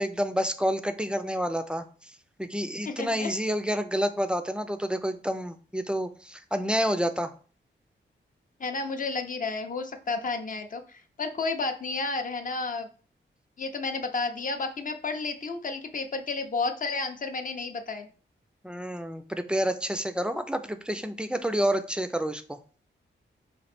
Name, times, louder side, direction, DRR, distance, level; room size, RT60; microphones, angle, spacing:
voice 1, 0.0-7.3 18.6-22.6, equal, 5° right, 9 dB, 0.3 m, -29 dB
voice 2, 2.9-3.3 8.6-12.9 13.6-18.1, left 3 dB, 45° left, 6 dB, 0.5 m, -31 dB
3.1 x 2.5 x 4.2 m, 0.40 s
wide cardioid pair, 85°, 20 cm